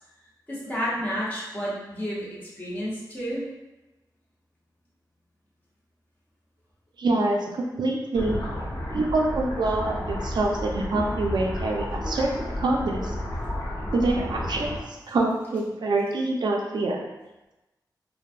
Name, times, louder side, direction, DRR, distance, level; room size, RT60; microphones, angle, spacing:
voice 1, 0.5-2.3 2.6-3.4, equal, 25° left, -7 dB, 0.9 m, -30 dB
voice 2, 7.0-8.3 8.9-12.3 12.6-13.1 13.9-14.8 15.1-17.0, right 2 dB, 75° right, 0 dB, 0.4 m, -25 dB
sound 1, 8.1-14.8, left 1 dB, 60° left, 0.9 m, -31 dB
3.1 x 2.1 x 2.5 m, 1.0 s
wide cardioid pair, 140°, 7 cm